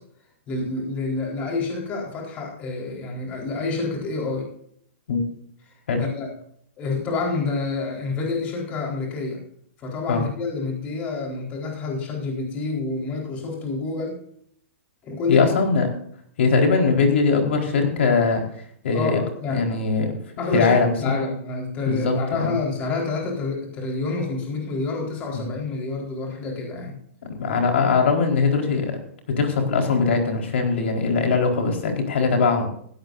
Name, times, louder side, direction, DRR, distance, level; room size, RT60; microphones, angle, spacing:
voice 1, 0.5-4.5 5.7-6.3 6.8-9.4 9.8-14.2 15.0-15.5 18.9-19.8 20.4-27.0, left 3 dB, 20° left, 0 dB, 4.1 m, -28 dB
voice 2, 15.3-15.9 16.4-18.4 18.8-19.2 19.5-20.2 20.5-21.2 21.8-22.5 25.3-25.5 27.4-29.0 29.4-32.7, left 4 dB, 60° left, 2 dB, 4.3 m, -21 dB
18.0 x 16.5 x 2.6 m, 0.65 s
hypercardioid pair, 175°, 7 cm